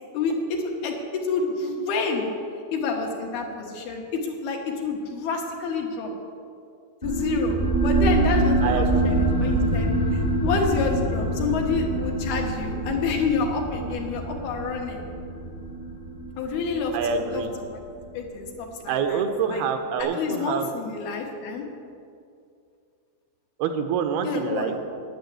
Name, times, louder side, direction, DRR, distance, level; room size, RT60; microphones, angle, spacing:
voice 1, 0.1-2.3 2.7-6.1 7.0-7.6 7.8-15.1 16.4-17.4 18.1-19.2 19.5-19.6 20.0-21.7 24.2-24.8, left 4 dB, 85° left, 1 dB, 3.4 m, -28 dB
sound 1, 7.0-18.1, right 2 dB, 40° left, 0.6 m, -25 dB
voice 2, 8.6-9.1 16.9-17.5 18.9-20.7 23.6-24.8, right 6 dB, 85° right, 6 dB, 2.9 m, -26 dB
10.5 x 9.7 x 8.3 m, 2.4 s
omnidirectional pair, 4.4 m